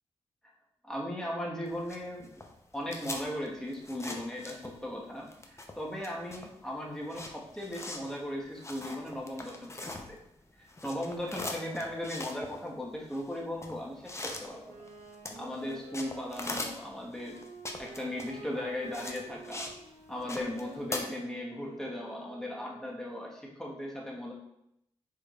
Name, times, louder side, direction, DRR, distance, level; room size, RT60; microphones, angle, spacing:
voice 1, 0.8-2.3 2.7-10.2 10.6-14.9 15.3-17.4 17.8-19.7 20.1-24.3, left 1 dB, 5° left, -3 dB, 1.3 m, -37 dB
sound 1, 1.7-5.0 5.3-10.4 10.7-19.8 20.1-21.0, left 2 dB, 25° left, 0.7 m, -41 dB
Wind instrument woodwind instrument, 14.6-22.9, right 3 dB, 75° right, 0.8 m, -49 dB
4.8 x 4.6 x 2.4 m, 0.80 s
cardioid pair, 50°, 12 cm